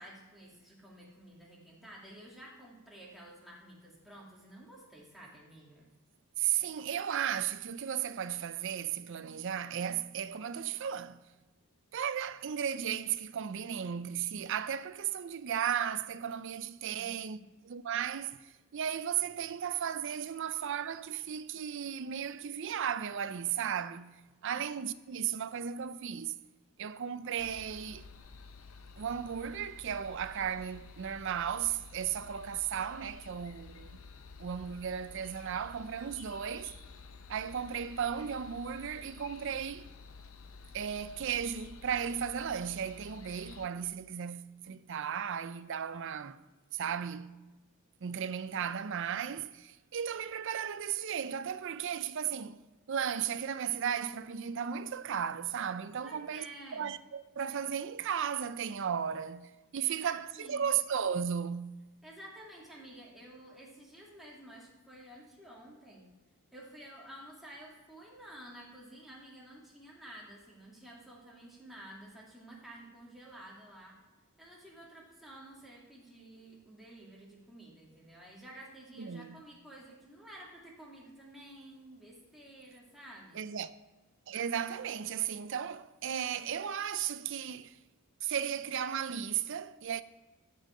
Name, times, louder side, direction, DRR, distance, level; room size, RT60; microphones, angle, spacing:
voice 1, 0.0-5.9 16.9-17.5 24.5-24.6 56.0-56.9 59.9-60.7 62.0-66.1 66.5-74.0 74.4-83.4, right 1 dB, ahead, 2.3 m, -51 dB
voice 2, 6.4-11.3 11.9-26.4 26.8-28.0 29.0-34.0 34.4-36.7 37.3-39.9 40.7-46.4 46.7-47.4 48.0-52.6 52.9-56.5 56.7-61.8 79.0-79.4 83.3-83.7 84.3-87.8 88.2-90.0, right 8 dB, 55° right, 0.4 m, -35 dB
sound 1, 27.4-43.7, left 4 dB, 70° left, 0.7 m, -51 dB
13.0 x 5.4 x 4.9 m
head